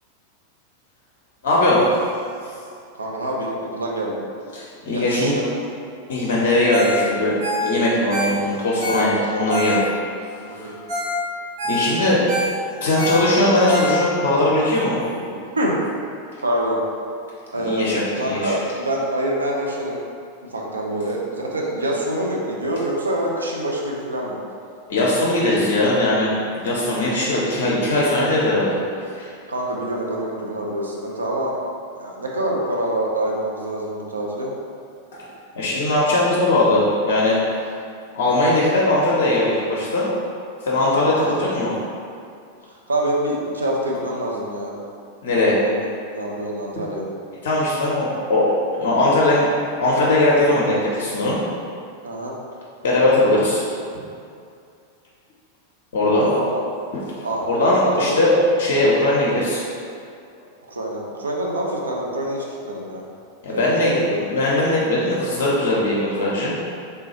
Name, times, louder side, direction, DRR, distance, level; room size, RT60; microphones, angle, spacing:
voice 1, 1.4-1.8 4.5-5.3 6.1-7.3 7.6-9.8 10.5-10.7 11.7-12.2 12.8-15.0 17.6-18.5 24.9-28.8 29.1-29.3 35.6-37.4 38.1-40.1 40.7-41.7 45.2-45.5 46.8-46.9 47.4-49.5 49.8-51.4 52.8-53.6 55.9-56.3 56.9-59.6 63.4-63.9 64.3-66.6, left 1 dB, 55° left, -6 dB, 0.5 m, -19 dB
voice 2, 2.9-4.2 4.9-5.7 10.6-10.8 15.6-15.8 16.4-16.8 17.5-17.9 18.1-20.0 20.4-24.4 29.5-31.6 31.9-34.5 41.2-41.4 42.7-44.7 45.3-47.1 52.0-52.4 56.1-56.6 57.2-58.3 60.7-63.0 63.5-64.2, right 1 dB, 75° right, -2 dB, 0.4 m, -26 dB
Ringtone, 6.7-7.0 7.3-10.1 10.6-10.7 10.9-11.2 11.4-14.3 14.8-14.9, left 1 dB, 50° right, 1.3 m, -26 dB
3.3 x 2.2 x 2.9 m, 2.4 s
figure-of-eight pair, 90°, 0 cm